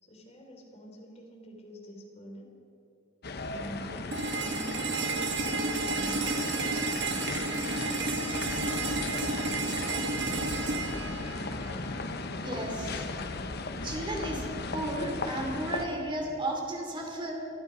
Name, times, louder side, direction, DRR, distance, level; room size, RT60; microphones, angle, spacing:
voice 1, 0.0-2.5 3.4-6.3 6.9-7.7, equal, 35° left, 0 dB, 3.2 m, -46 dB
sound 1, 3.2-15.9, left 3 dB, 60° left, 1.0 m, -36 dB
sound 2, 4.1-12.1, right 4 dB, 65° right, 1.3 m, -32 dB
voice 2, 12.4-13.1 13.8-14.5 14.7-17.3, right 1 dB, 25° right, 1 dB, 2.8 m, -34 dB
26.0 x 9.6 x 5.1 m, 2.7 s
head